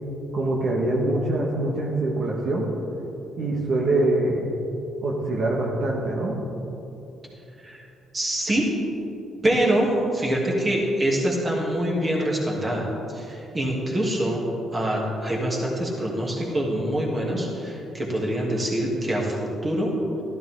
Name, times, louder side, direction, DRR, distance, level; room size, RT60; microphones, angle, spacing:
voice 1, 0.3-2.7 3.4-4.4 5.0-6.4, right 2 dB, 60° right, -3 dB, 1.6 m, -24 dB
voice 2, 8.1-8.7 9.4-14.4 14.7-19.9, right 1 dB, 30° right, -3 dB, 2.8 m, -25 dB
13.5 x 12.0 x 3.8 m, 2.9 s
cardioid pair, 90°, 0 cm